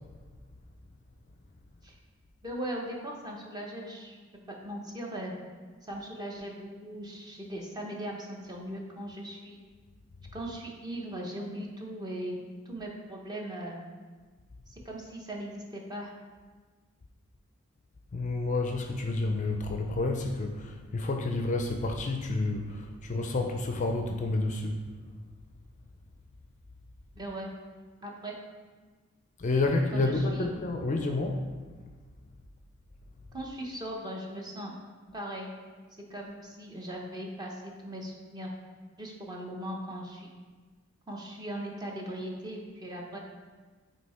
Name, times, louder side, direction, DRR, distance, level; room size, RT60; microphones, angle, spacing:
voice 1, 2.4-4.2 4.5-5.3 5.8-9.6 10.3-12.4 12.7-13.8 14.7-16.1 27.1-27.5 28.0-28.3 29.9-30.5 33.3-34.7 35.1-35.5 36.1-38.5 39.0-40.3 41.1-43.2, right 1 dB, 20° right, -1 dB, 0.8 m, -39 dB
voice 2, 18.1-24.8 29.4-31.4, left 2 dB, 35° left, 3 dB, 0.4 m, -29 dB
7.9 x 2.8 x 4.2 m, 1.4 s
head